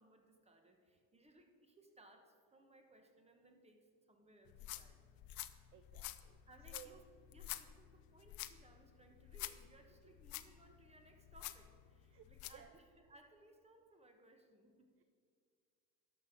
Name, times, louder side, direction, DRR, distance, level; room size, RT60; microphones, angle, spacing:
voice 1, 0.0-5.0 6.5-7.0 7.3-14.9, right 1 dB, 15° right, 4 dB, 1.3 m, -65 dB
sound 1, 4.5-12.7, left 14 dB, 55° left, 0.6 m, -50 dB
voice 2, 5.7-6.4 6.7-7.1 12.1-12.8 15.0-15.1, right 12 dB, 35° right, 10 dB, 0.4 m, -59 dB
12.5 x 6.1 x 5.2 m, 2.2 s
supercardioid pair, 110°, 42 cm